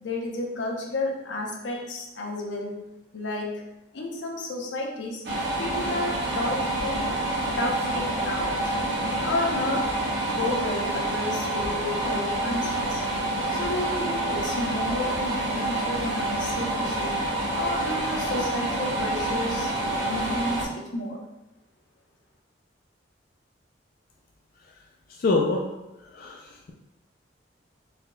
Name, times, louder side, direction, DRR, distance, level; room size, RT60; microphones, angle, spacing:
voice 1, 0.0-2.8 3.1-3.6 3.9-5.2 5.6-7.1 7.6-8.7 9.2-9.9 10.3-13.0 13.5-17.2 17.5-19.7 20.0-21.2, left 2 dB, 85° left, 0 dB, 0.8 m, -31 dB
sound 1, 5.2-20.6, right 1 dB, 65° right, 1.0 m, -27 dB
voice 2, 25.1-25.7 26.0-26.7, left 3 dB, 50° left, -1 dB, 0.4 m, -27 dB
4.2 x 3.8 x 2.2 m, 0.98 s
head